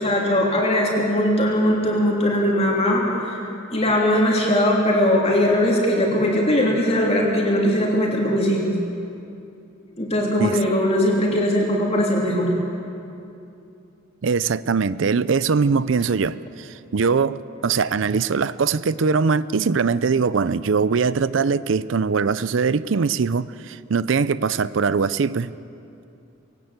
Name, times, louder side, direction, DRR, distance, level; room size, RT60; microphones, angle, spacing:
voice 1, 0.0-3.4 3.7-8.8 10.0-12.5, left 1 dB, 30° left, 3.2 m, -20 dB
voice 2, 14.2-25.5, right 5 dB, 65° right, 0.5 m, -21 dB
21.5 x 18.0 x 8.1 m
head